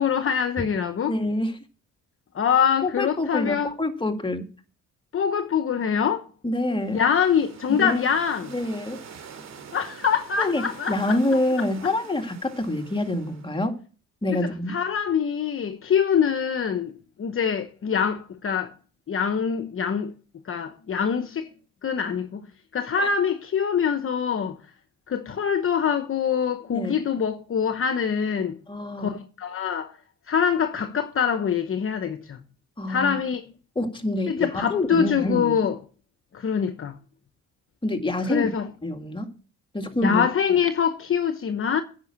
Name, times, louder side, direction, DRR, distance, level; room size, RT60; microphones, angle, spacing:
voice 1, 0.0-1.1 2.3-3.7 5.1-6.3 6.9-8.5 9.7-11.2 14.7-16.9 17.2-18.7 19.1-20.1 20.5-21.5 21.8-22.4 22.7-24.6 25.1-28.6 29.0-29.9 30.3-32.4 32.9-33.4 34.3-35.8 36.3-36.9 38.3-38.7 40.0-41.8, left 7 dB, 45° left, 1.0 m, -24 dB
voice 2, 1.1-1.6 2.8-4.5 6.4-7.0 7.7-8.0 8.5-9.0 10.4-13.8 14.2-14.8 26.7-26.9 28.7-29.2 32.8-33.2 33.8-35.5 37.8-38.5 38.8-39.3 39.7-40.2, left 1 dB, 15° left, 2.1 m, -26 dB
sound 1, 6.6-13.7, right 6 dB, 60° right, 2.5 m, -46 dB
9.9 x 5.9 x 8.5 m
cardioid pair, 90°, 30 cm